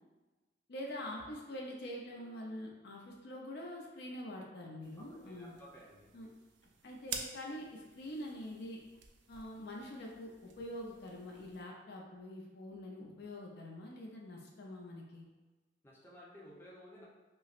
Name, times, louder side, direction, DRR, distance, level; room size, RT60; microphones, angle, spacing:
voice 1, 0.7-5.6 6.1-6.3 6.8-8.8 9.3-15.3, left 1 dB, 60° left, -1 dB, 0.5 m, -45 dB
sound 1, 4.8-11.6, right 6 dB, 65° right, 0.4 m, -50 dB
voice 2, 5.0-6.1 15.8-17.1, equal, 15° left, -5 dB, 0.6 m, -55 dB
5.4 x 2.1 x 2.4 m, 1.2 s
head